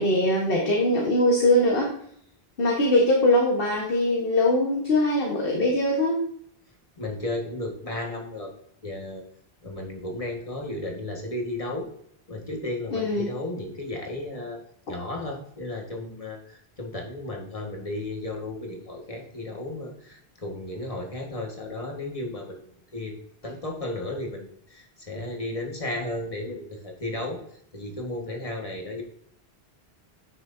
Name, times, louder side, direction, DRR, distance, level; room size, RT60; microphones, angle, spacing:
voice 1, 0.0-1.9 2.6-6.2 12.9-13.3, left 1 dB, 65° left, -1 dB, 1.5 m, -22 dB
voice 2, 7.0-8.5 8.8-9.2 9.6-11.9 12.3-27.4 27.7-29.0, left 1 dB, 35° left, 1 dB, 1.7 m, -34 dB
9.9 x 6.3 x 2.7 m, 0.66 s
omnidirectional pair, 1.0 m